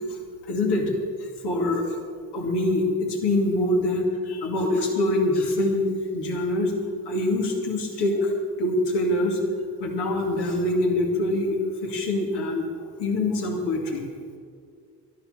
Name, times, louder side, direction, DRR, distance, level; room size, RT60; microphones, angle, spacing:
voice 1, 0.5-0.9 1.4-1.8 2.3-5.9 6.1-6.7 7.1-9.4 9.8-12.7 13.0-14.0, left 1 dB, 75° left, 1 dB, 2.5 m, -24 dB
11.5 x 11.0 x 6.7 m, 2.2 s
supercardioid pair, 60°, 40 cm